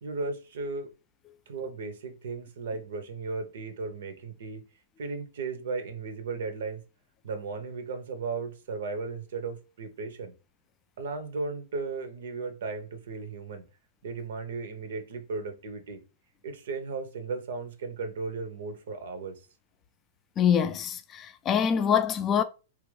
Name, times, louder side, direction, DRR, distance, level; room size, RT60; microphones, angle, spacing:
voice 1, 0.0-0.9 1.5-4.6 5.0-6.8 7.2-10.3 11.0-13.6 14.0-16.0 16.4-19.5, right 4 dB, 75° right, 0.6 m, -35 dB
voice 2, 20.4-22.4, left 8 dB, 30° left, 0.3 m, -25 dB
2.9 x 2.5 x 3.1 m
hypercardioid pair, 120°, 0 cm